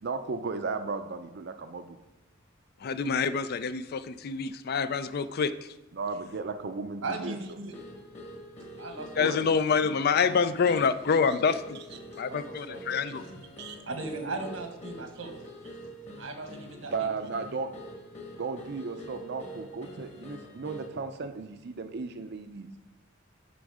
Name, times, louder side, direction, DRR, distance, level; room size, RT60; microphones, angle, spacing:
voice 1, 0.0-2.0 5.9-7.6 9.2-9.4 10.7-10.8 11.2-11.4 12.9-13.0 13.6-13.8 16.9-17.7 18.4-22.7, right 4 dB, 60° right, 8 dB, 0.5 m, -35 dB
voice 2, 2.8-5.5 9.2-11.8 12.2-13.2, left 5 dB, 55° left, 13 dB, 0.4 m, -26 dB
voice 3, 7.0-7.7 8.8-9.4 12.2-13.3 13.9-15.3 16.2-16.9, right 3 dB, 90° right, 5 dB, 1.4 m, -38 dB
sound 1, 7.7-21.0, equal, 35° left, 1.6 m, -45 dB
10.0 x 5.2 x 4.8 m, 1.0 s
head